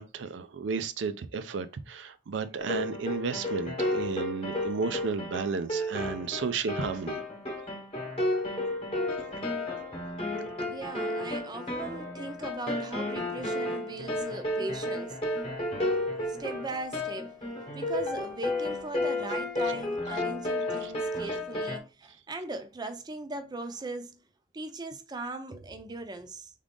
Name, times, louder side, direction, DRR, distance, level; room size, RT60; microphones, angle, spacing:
voice 1, 0.0-7.2 20.8-20.9, right 5 dB, 90° right, 0.5 m, -33 dB
sound 1, 2.6-21.8, left 1 dB, 30° left, 1.0 m, -32 dB
voice 2, 10.6-15.4 16.4-17.3 17.7-24.2 24.5-26.5, right 2 dB, 25° right, 0.5 m, -39 dB
3.7 x 3.6 x 3.7 m
head